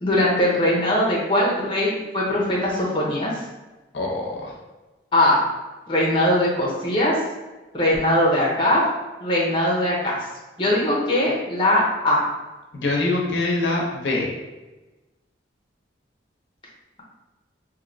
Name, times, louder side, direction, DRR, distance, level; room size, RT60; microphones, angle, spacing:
voice 1, 0.0-3.4 5.1-5.4 5.9-7.2 7.7-8.8 9.2-10.3 10.6-12.3, left 1 dB, 25° left, -4 dB, 0.6 m, -20 dB
voice 2, 3.9-4.6 12.7-14.3, left 2 dB, 70° left, -2 dB, 0.6 m, -24 dB
3.1 x 2.7 x 2.5 m, 1.1 s
head